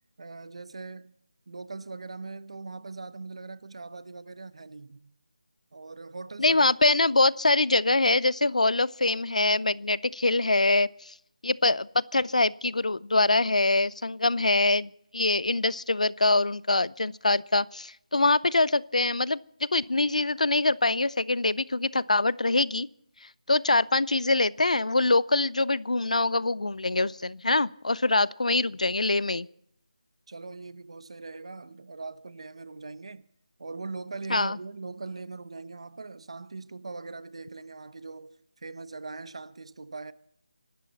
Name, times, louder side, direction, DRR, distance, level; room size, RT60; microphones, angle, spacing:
voice 1, 0.2-1.2 1.5-5.1 5.7-6.7 30.3-33.3 33.6-40.1, right 3 dB, 55° right, 0.9 m, -41 dB
voice 2, 6.4-11.1 11.4-22.9 23.5-29.5 34.3-34.6, left 2 dB, 85° left, 0.6 m, -24 dB
25.5 x 12.5 x 4.1 m
figure-of-eight pair, 170°, 4 cm